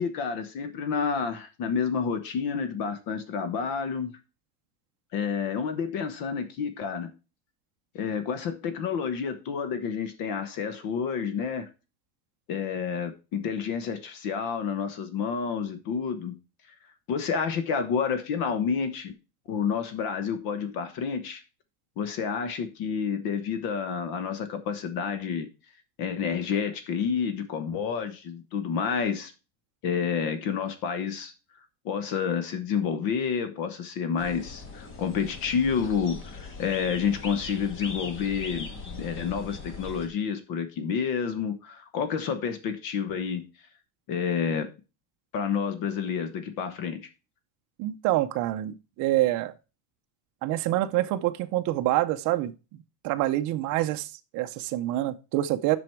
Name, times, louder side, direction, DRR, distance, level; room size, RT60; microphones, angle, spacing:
voice 1, 0.0-4.2 5.1-7.1 7.9-11.7 12.5-16.4 16.7-16.8 17.1-19.1 19.5-21.4 22.0-25.5 26.0-29.3 29.8-31.3 31.8-38.7 39.0-43.7 44.1-44.7 45.3-47.0, left 6 dB, 50° left, 1.2 m, -29 dB
sound 1, 34.2-40.1, left 3 dB, 25° left, 1.5 m, -40 dB
voice 2, 47.8-49.5 50.4-52.5 53.0-55.8, right 15 dB, 40° right, 0.6 m, -26 dB
7.6 x 6.2 x 4.7 m
cardioid pair, 155°, 46 cm